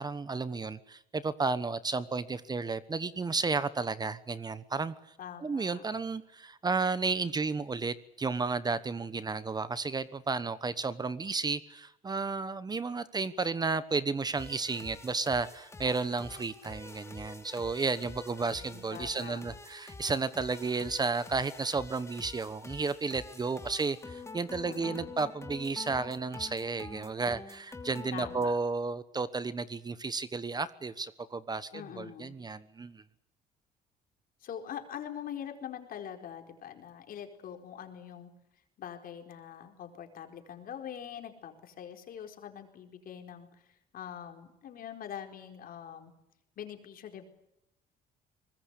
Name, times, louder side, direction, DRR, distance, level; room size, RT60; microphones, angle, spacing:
voice 1, 0.0-4.9 5.4-33.0, right 4 dB, 25° right, 15 dB, 1.1 m, -33 dB
voice 2, 5.2-5.8 18.4-19.4 24.6-25.1 28.1-28.6 31.7-32.4 34.4-38.3 38.8-43.5 43.9-46.1 46.6-47.3, left 9 dB, 60° left, 5 dB, 4.5 m, -43 dB
sound 1, 14.3-28.4, left 3 dB, 15° left, 2.6 m, -47 dB
24.0 x 20.5 x 8.3 m, 0.82 s
cardioid pair, 110°, 17 cm